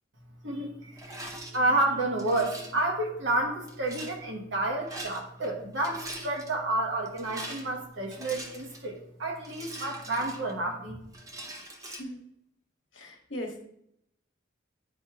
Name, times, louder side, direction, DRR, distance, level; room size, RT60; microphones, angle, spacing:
voice 1, 0.4-11.0, right 2 dB, 65° right, 1 dB, 1.3 m, -30 dB
Rattle, 1.0-1.6 2.2-2.8 3.7-4.2 4.8-5.5 5.7-6.5 7.1-8.9 9.4-10.7 11.1-12.0, right 1 dB, 15° right, 0.8 m, -42 dB
voice 2, 11.8-12.2 12.9-13.6, equal, 70° left, 1 dB, 1.2 m, -39 dB
10.0 x 4.4 x 2.4 m, 0.76 s
head